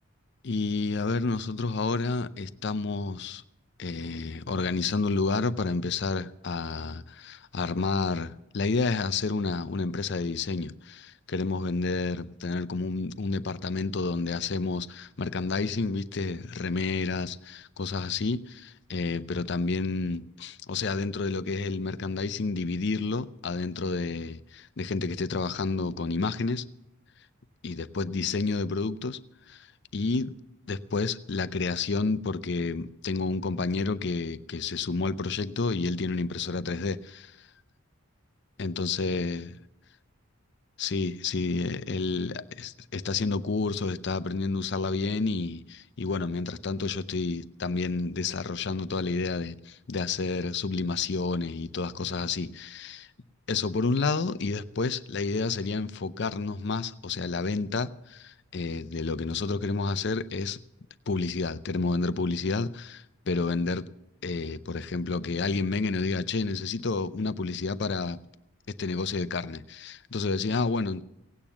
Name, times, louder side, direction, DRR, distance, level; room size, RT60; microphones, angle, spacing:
voice 1, 0.4-3.4 3.8-26.6 27.6-29.2 29.5-29.7 29.9-30.4 30.7-37.3 38.6-39.5 40.8-53.1 53.5-60.6 61.1-63.9 64.2-68.2 68.7-71.0, left 4 dB, 50° left, 0.5 m, -30 dB
17.0 x 8.9 x 7.1 m
head